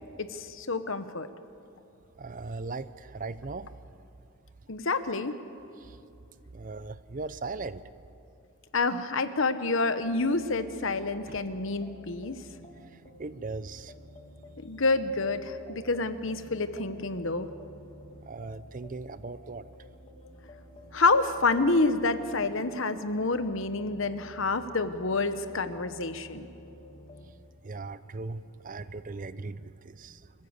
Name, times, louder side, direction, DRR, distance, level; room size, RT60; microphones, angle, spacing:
voice 1, 0.2-1.3 4.7-5.3 8.7-12.4 14.6-17.5 20.9-26.4, left 3 dB, 60° left, 11 dB, 1.0 m, -28 dB
voice 2, 2.2-3.7 5.8-6.0 6.5-7.8 11.3-11.4 13.2-13.9 18.2-19.7 27.6-30.5, right 3 dB, 35° right, 14 dB, 0.5 m, -38 dB
sound 1, 10.0-27.3, equal, 25° left, 1.9 m, -51 dB
26.0 x 15.0 x 8.1 m, 2.6 s
head